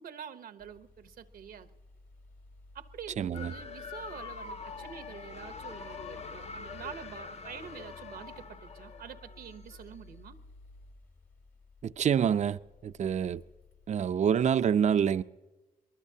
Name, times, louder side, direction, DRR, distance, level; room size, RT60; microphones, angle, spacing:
voice 1, 0.0-1.7 2.7-10.4, right 8 dB, 80° right, 0.9 m, -46 dB
sound 1, 0.6-14.4, left 2 dB, 75° left, 1.9 m, -55 dB
voice 2, 3.2-3.5 11.8-13.4 13.9-15.2, right 8 dB, 50° right, 0.5 m, -27 dB
sound 2, 3.3-9.9, left 5 dB, 45° left, 0.7 m, -44 dB
24.5 x 20.0 x 2.8 m
cardioid pair, 75°, 15 cm